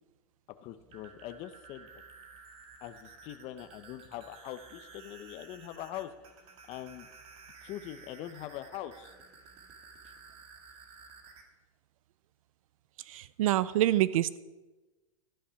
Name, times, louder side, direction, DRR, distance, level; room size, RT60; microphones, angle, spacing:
voice 1, 0.6-1.9 2.8-6.1 6.7-7.1 7.6-9.1, left 12 dB, 35° left, 9 dB, 0.7 m, -42 dB
sound 1, 0.8-11.4, right 5 dB, 30° right, 2.0 m, -53 dB
voice 2, 13.1-14.4, right 13 dB, 65° right, 17 dB, 0.6 m, -26 dB
12.5 x 10.0 x 5.7 m, 1.2 s
supercardioid pair, 150°, 19 cm